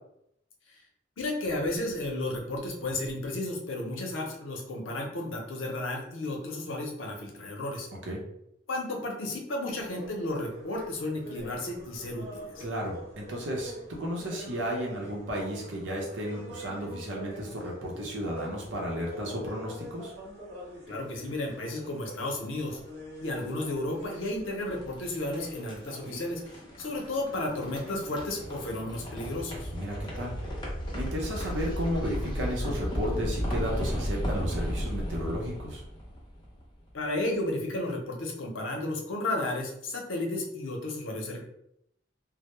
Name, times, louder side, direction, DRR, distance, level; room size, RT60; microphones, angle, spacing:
voice 1, 1.2-7.9 8.7-12.6 20.9-22.8 23.2-29.7 36.9-41.4, left 1 dB, 90° left, 1 dB, 0.6 m, -33 dB
sound 1, 9.7-28.7, equal, 50° right, 1.0 m, -45 dB
voice 2, 12.6-20.1 29.7-30.5 30.9-35.8, equal, 70° right, -1 dB, 0.7 m, -33 dB
sound 2, 24.7-36.8, equal, 25° left, 0.5 m, -34 dB
2.1 x 2.0 x 2.9 m, 0.77 s
head